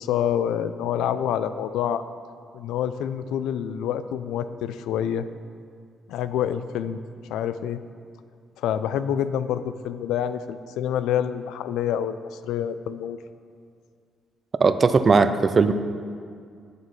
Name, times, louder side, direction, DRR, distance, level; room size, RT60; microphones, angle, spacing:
voice 1, 0.0-2.0 2.5-5.3 6.1-7.0 7.3-7.8 8.6-13.2, left 9 dB, 90° left, 12 dB, 0.4 m, -27 dB
voice 2, 14.6-15.7, right 4 dB, 35° right, 11 dB, 0.4 m, -18 dB
11.0 x 8.3 x 3.2 m, 2.2 s
cardioid pair, 90°, 0 cm